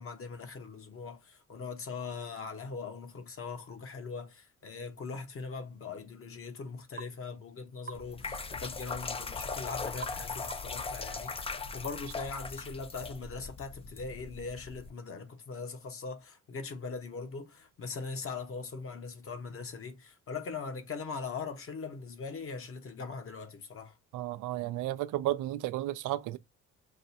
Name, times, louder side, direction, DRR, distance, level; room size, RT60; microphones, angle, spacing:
voice 1, 0.0-24.0, left 4 dB, 45° left, 1.1 m, -41 dB
sound 1, 7.0-7.2 7.9-8.1 10.0-10.2 10.5-10.8, right 4 dB, 35° right, 0.6 m, -43 dB
sound 2, 7.9-14.9, left 4 dB, 20° left, 0.4 m, -39 dB
voice 2, 24.1-26.4, right 14 dB, 85° right, 0.5 m, -33 dB
6.3 x 2.4 x 2.7 m
cardioid pair, 90°, 30 cm